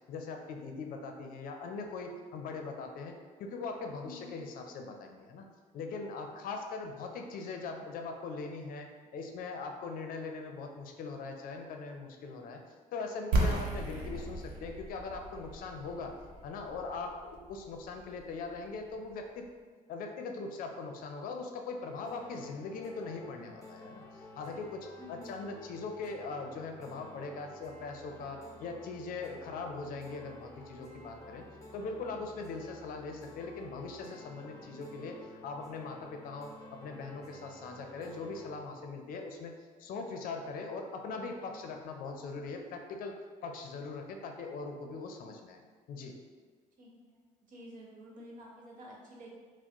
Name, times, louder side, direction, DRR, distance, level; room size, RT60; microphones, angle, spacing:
voice 1, 0.1-5.5 5.7-12.6 12.9-16.2 16.4-19.5 19.9-31.4 31.7-39.5 39.8-45.6 45.9-46.1, left 4 dB, 75° left, 4 dB, 0.5 m, -41 dB
sound 1, 13.3-19.1, right 2 dB, 90° right, 0.7 m, -35 dB
sound 2, 22.0-38.6, left 1 dB, 20° left, 0.9 m, -52 dB
voice 2, 25.0-25.3 46.8-49.3, left 1 dB, 60° right, -3 dB, 1.0 m, -50 dB
4.6 x 2.0 x 2.9 m, 1.5 s
cardioid pair, 85°, 15 cm